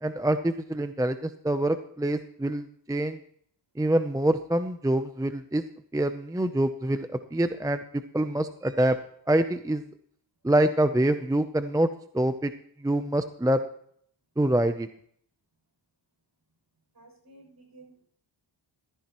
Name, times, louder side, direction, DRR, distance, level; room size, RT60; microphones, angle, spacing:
voice 1, 0.0-3.2 3.8-5.6 5.9-7.8 8.1-9.0 9.3-9.8 10.4-11.9 12.1-12.5 12.8-13.6 14.4-14.9, right 1 dB, 10° right, 10 dB, 0.6 m, -25 dB
voice 2, 17.0-18.0, right 2 dB, 50° right, 0 dB, 6.8 m, -53 dB
14.5 x 14.0 x 3.0 m, 0.63 s
wide cardioid pair, 95°, 47 cm